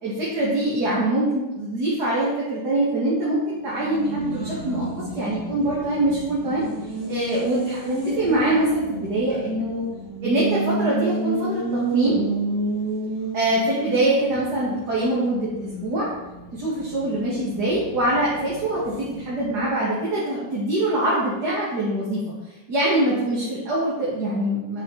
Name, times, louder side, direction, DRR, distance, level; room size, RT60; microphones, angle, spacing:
voice 1, 0.0-4.9 5.1-6.6 7.1-9.8 10.2-12.2 13.3-16.1 16.5-22.2 22.7-24.8, right 1 dB, 70° right, -8 dB, 2.8 m, -24 dB
Race car auto racing, 3.6-19.9, right 2 dB, 45° right, 2.5 m, -31 dB
11.0 x 6.3 x 4.3 m, 1.1 s
omnidirectional pair, 1.8 m